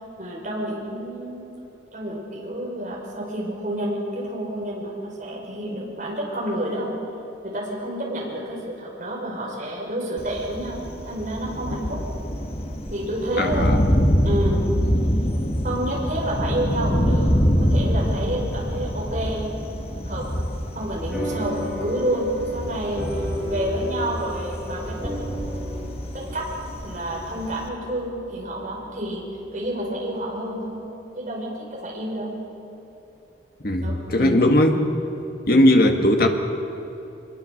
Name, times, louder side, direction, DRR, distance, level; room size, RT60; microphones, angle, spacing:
voice 1, 0.2-1.5 1.9-7.0 7.4-12.0 12.9-13.8 14.2-14.7 15.6-19.5 20.1-20.3 20.7-25.5 26.1-26.4 26.8-29.2 29.5-32.3 33.8-33.9 34.2-34.4 35.5-35.7, right 1 dB, 45° right, -3 dB, 5.9 m, -29 dB
Thunder, 10.2-27.7, equal, 30° left, 1.5 m, -25 dB
voice 2, 13.4-13.8 33.6-34.8 35.5-36.3, left 1 dB, 50° left, 4 dB, 2.0 m, -18 dB
sound 1, 21.1-29.9, equal, 5° right, 5.6 m, -33 dB
24.0 x 22.0 x 6.7 m, 2.9 s
head